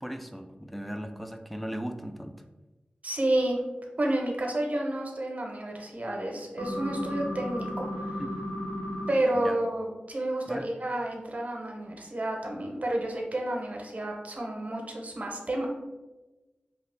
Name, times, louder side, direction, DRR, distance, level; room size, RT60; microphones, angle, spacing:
voice 1, 0.0-2.3 8.2-8.3 9.3-9.6 10.5-10.7, equal, ahead, 6 dB, 0.3 m, -37 dB
voice 2, 3.0-3.6 4.0-8.2 9.1-15.7, right 1 dB, 45° right, 1 dB, 0.7 m, -30 dB
sound 1, 6.6-9.1, equal, 75° left, 0.8 m, -34 dB
2.8 x 2.4 x 3.1 m, 1.1 s
cardioid pair, 50°, 3 cm